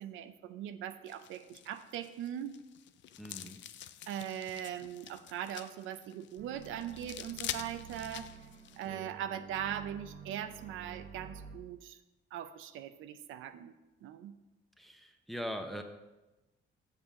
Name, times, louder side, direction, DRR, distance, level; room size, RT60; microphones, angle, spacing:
voice 1, 0.0-2.6 4.1-8.3 8.8-12.0 12.3-13.7 14.0-14.4, right 10 dB, 85° right, 10 dB, 0.5 m, -40 dB
sound 1, 1.1-8.9, left 11 dB, 65° left, 0.4 m, -46 dB
voice 2, 3.2-3.6 14.8-15.8, equal, ahead, 4 dB, 0.8 m, -41 dB
sound 2, 6.4-11.6, right 6 dB, 55° right, 0.8 m, -49 dB
7.3 x 7.0 x 3.7 m, 1.0 s
cardioid pair, 90°, 20 cm